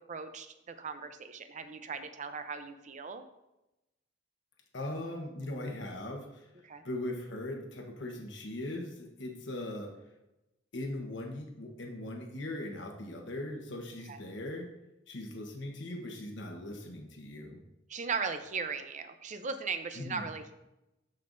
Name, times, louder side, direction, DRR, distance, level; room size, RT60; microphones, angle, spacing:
voice 1, 0.0-3.2 6.6-6.8 14.1-14.2 17.9-20.5, right 5 dB, 40° right, 9 dB, 0.6 m, -38 dB
voice 2, 4.7-6.5 6.8-9.9 10.7-14.7 15.1-17.6 20.0-20.3, left 1 dB, 70° left, 2 dB, 1.1 m, -39 dB
13.5 x 5.4 x 2.6 m, 0.93 s
head